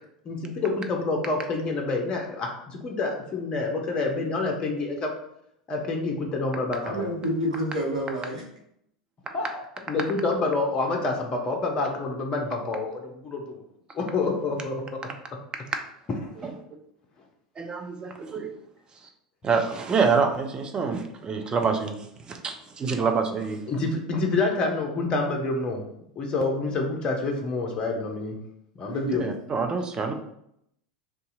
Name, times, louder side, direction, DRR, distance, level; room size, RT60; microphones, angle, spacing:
voice 1, 0.3-5.1 5.7-7.1 9.3-13.6 13.9-15.4 16.2-16.3 23.7-25.9 26.2-28.4 28.8-29.3, left 3 dB, 25° left, 1 dB, 0.6 m, -28 dB
voice 2, 6.8-8.4 28.8-29.3, right 1 dB, 75° right, -2 dB, 0.9 m, -29 dB
voice 3, 17.6-18.5 19.4-23.7 29.2-30.1, right 5 dB, 20° right, 4 dB, 0.4 m, -26 dB
2.6 x 2.3 x 3.9 m, 0.74 s
figure-of-eight pair, 80°, 4 cm